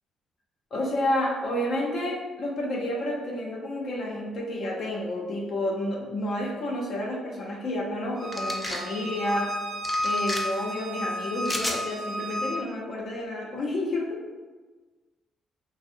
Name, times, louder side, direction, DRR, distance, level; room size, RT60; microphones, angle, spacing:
voice 1, 0.7-9.5 10.0-14.2, left 1 dB, 60° left, -3 dB, 0.6 m, -30 dB
Bowed string instrument, 8.2-12.6, left 1 dB, 55° right, 0.6 m, -32 dB
sound 1, 8.3-8.8 9.8-10.4 11.4-11.8, left 1 dB, 10° left, 0.4 m, -32 dB
2.6 x 2.0 x 2.5 m, 1.3 s
cardioid pair, 90°, 0 cm